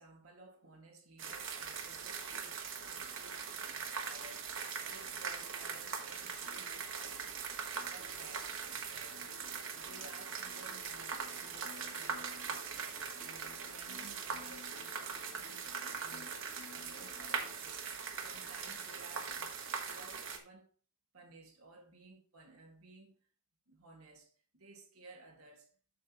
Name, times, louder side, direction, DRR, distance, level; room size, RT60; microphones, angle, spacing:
voice 1, 0.0-7.5 7.8-20.7 21.1-23.2 23.7-25.7, right 2 dB, 85° right, 2.0 m, -57 dB
sound 1, 1.2-20.4, right 6 dB, 65° right, 1.3 m, -41 dB
sound 2, 5.1-17.6, left 6 dB, 45° left, 1.2 m, -59 dB
8.4 x 7.0 x 3.0 m
head